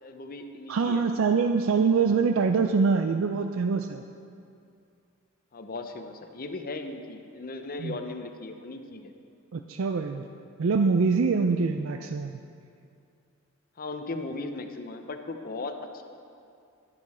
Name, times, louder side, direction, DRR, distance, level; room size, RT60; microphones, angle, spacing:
voice 1, 0.0-1.1 5.5-9.1 13.8-16.0, left 2 dB, 45° left, 6 dB, 0.7 m, -37 dB
voice 2, 0.7-4.0 7.8-7.9 9.5-10.2 10.6-12.4, right 5 dB, 70° right, 6 dB, 0.4 m, -24 dB
11.5 x 11.0 x 4.2 m, 2.5 s
head